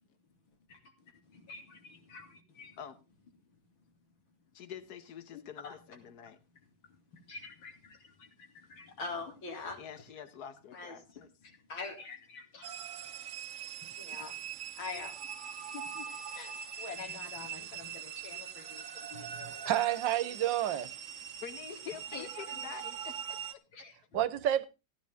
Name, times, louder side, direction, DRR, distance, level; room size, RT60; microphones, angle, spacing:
voice 1, 0.7-2.8 5.3-5.7 7.1-9.8 10.7-13.1 14.0-14.4 14.8-19.7 20.7-20.9 21.7-21.8 22.1-22.7 23.7-24.0, left 4 dB, 90° left, 3.3 m, -46 dB
voice 2, 4.5-6.4 9.8-11.3 17.6-17.7 19.6-19.8 21.4-23.6, left 8 dB, 60° left, 1.5 m, -47 dB
sound 1, 12.6-23.5, right 9 dB, 55° right, 1.0 m, -42 dB
voice 3, 19.1-20.9 24.1-24.6, right 12 dB, 75° right, 1.5 m, -30 dB
15.5 x 10.0 x 3.5 m
omnidirectional pair, 2.1 m